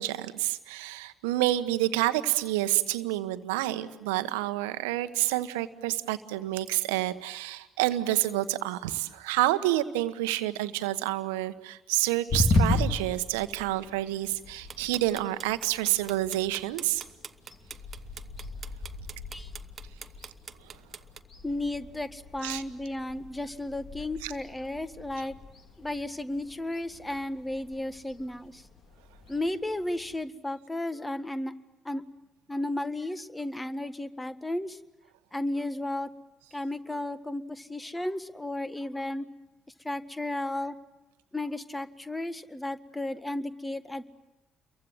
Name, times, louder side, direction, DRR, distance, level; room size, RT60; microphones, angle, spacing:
voice 1, 0.0-17.0 22.4-22.6 24.2-24.3, right 16 dB, 80° right, 11 dB, 1.1 m, -28 dB
sound 1, 12.3-30.2, left 2 dB, 50° left, 3.5 m, -36 dB
sound 2, 14.7-21.2, right 6 dB, 45° right, 1.0 m, -43 dB
voice 2, 21.4-25.4 25.8-28.7 29.3-31.5 31.9-32.0 32.5-34.8 35.3-36.1 36.5-39.3 39.8-40.7 41.3-44.0, left 1 dB, 15° left, 12 dB, 1.7 m, -34 dB
29.0 x 23.5 x 7.7 m, 1.0 s
hypercardioid pair, 45°, 0 cm